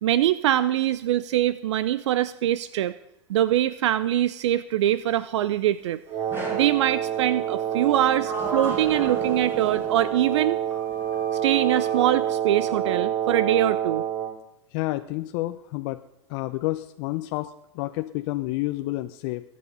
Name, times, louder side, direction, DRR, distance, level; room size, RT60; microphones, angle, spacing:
voice 1, 0.0-2.9 3.3-6.0 6.5-10.6 11.4-14.0, right 12 dB, 70° right, 16 dB, 0.6 m, -23 dB
Wind instrument woodwind instrument, 6.1-14.4, right 10 dB, 40° right, 2.6 m, -27 dB
Sliding door, 6.3-6.8 7.8-10.2 10.7-12.1, right 2 dB, 15° right, 7.2 m, -35 dB
voice 2, 14.7-16.0 16.3-19.4, left 18 dB, 55° left, 8 dB, 0.7 m, -29 dB
22.5 x 9.6 x 5.5 m, 0.85 s
hypercardioid pair, 100°, 15 cm